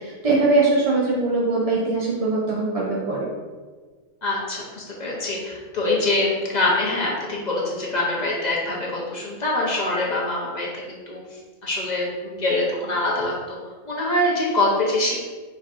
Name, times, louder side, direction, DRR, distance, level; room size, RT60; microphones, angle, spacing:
voice 1, 0.0-3.3, right 3 dB, 45° right, -5 dB, 0.5 m, -21 dB
voice 2, 4.2-11.2 11.6-13.6 13.9-15.3, left 2 dB, 40° left, -4 dB, 0.7 m, -24 dB
4.5 x 4.0 x 2.4 m, 1.4 s
omnidirectional pair, 1.4 m